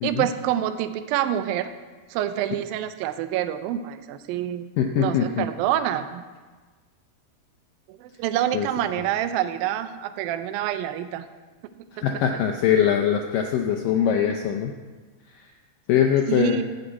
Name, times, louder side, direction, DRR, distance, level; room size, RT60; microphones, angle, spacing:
voice 1, 0.0-1.7 2.1-4.7 5.0-6.2 7.9-11.2 12.0-12.1 16.3-16.6, right 11 dB, 80° right, 10 dB, 2.1 m, -27 dB
voice 2, 4.8-5.5 8.5-8.7 11.9-14.7 15.9-16.6, left 8 dB, 85° left, 3 dB, 1.9 m, -22 dB
13.0 x 5.3 x 8.3 m, 1.3 s
omnidirectional pair, 4.7 m